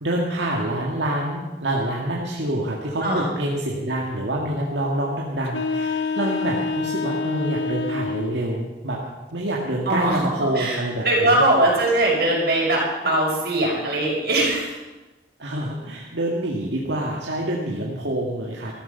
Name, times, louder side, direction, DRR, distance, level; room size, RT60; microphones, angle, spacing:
voice 1, 0.0-9.0 9.3-11.4 15.4-18.7, right 1 dB, 85° right, -3 dB, 2.0 m, -26 dB
sound 1, 5.5-8.5, left 4 dB, 90° left, 0.9 m, -26 dB
voice 2, 9.9-10.3 10.6-10.8 11.0-14.8, right 1 dB, 60° right, -3 dB, 5.7 m, -21 dB
14.5 x 13.5 x 5.7 m, 1.1 s
head